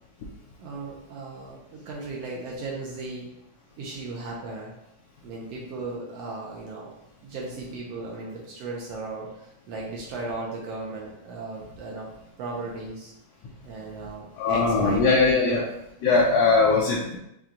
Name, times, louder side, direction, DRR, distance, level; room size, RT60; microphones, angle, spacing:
voice 1, 0.6-3.3 3.8-4.7 5.2-6.9 7.2-12.1 12.4-13.1 13.6-15.6, right 3 dB, 70° right, -3 dB, 1.6 m, -36 dB
voice 2, 14.4-15.6 16.0-17.2, left 4 dB, 75° left, -4 dB, 1.7 m, -20 dB
5.9 x 2.3 x 3.8 m, 0.84 s
omnidirectional pair, 3.4 m